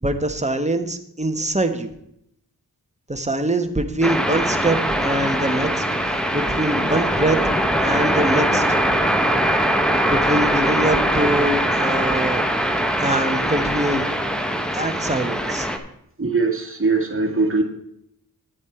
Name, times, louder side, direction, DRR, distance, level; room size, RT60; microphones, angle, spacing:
voice 1, 0.0-1.9 3.1-7.4 7.8-8.6 10.1-12.4 13.0-14.1 14.7-15.7, right 1 dB, 20° right, 7 dB, 1.3 m, -23 dB
sound 1, 4.0-15.8, equal, ahead, 1.2 m, -21 dB
voice 2, 16.2-17.6, right 3 dB, 35° right, 2 dB, 2.1 m, -21 dB
10.5 x 8.7 x 4.5 m, 0.75 s
wide cardioid pair, 60°, 38 cm